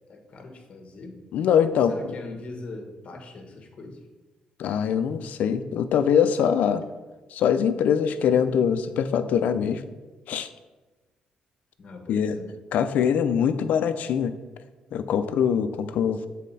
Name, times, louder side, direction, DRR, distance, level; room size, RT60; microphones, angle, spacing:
voice 1, 0.1-1.2 1.9-4.0 11.8-12.5, left 2 dB, 45° left, 4 dB, 1.2 m, -41 dB
voice 2, 1.3-1.9 4.6-6.8 7.3-9.8 10.3-10.5 12.1-12.4 12.7-14.3 14.9-16.2, left 8 dB, 80° left, 11 dB, 0.5 m, -23 dB
7.4 x 4.1 x 4.1 m, 1.2 s
cardioid pair, 105°, 3 cm